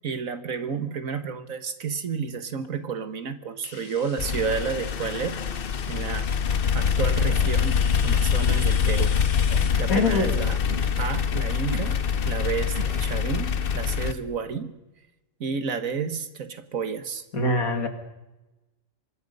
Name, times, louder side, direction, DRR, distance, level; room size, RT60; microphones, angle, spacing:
voice 1, 0.0-5.4 5.9-6.3 6.7-9.2 9.8-10.6 11.0-12.0 12.3-14.8 15.4-17.2, right 6 dB, 70° right, 10 dB, 1.8 m, -31 dB
sound 1, 3.6-13.3, left 6 dB, 65° left, 1.7 m, -44 dB
sound 2, 4.2-14.1, left 7 dB, 45° left, 0.9 m, -24 dB
sound 3, 7.2-7.6 8.4-8.7 9.5-9.8 10.6-11.0 11.7-12.0 12.7-13.1, right 2 dB, 25° right, 1.5 m, -38 dB
voice 2, 9.9-10.4 17.3-17.9, left 3 dB, 90° left, 7 dB, 2.5 m, -23 dB
25.0 x 20.0 x 5.4 m, 1.0 s
omnidirectional pair, 1.4 m